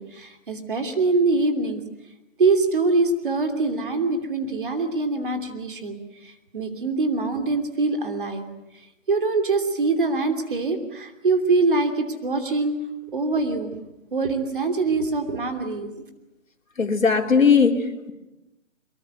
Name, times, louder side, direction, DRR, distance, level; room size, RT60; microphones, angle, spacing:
voice 1, 0.0-1.8 2.4-8.4 9.1-12.7 13.1-13.7 14.1-15.9, right 3 dB, 40° right, 6 dB, 3.0 m, -24 dB
voice 2, 16.8-18.1, left 5 dB, 80° left, 4 dB, 3.6 m, -19 dB
23.5 x 22.0 x 9.2 m, 0.98 s
hypercardioid pair, 180°, 39 cm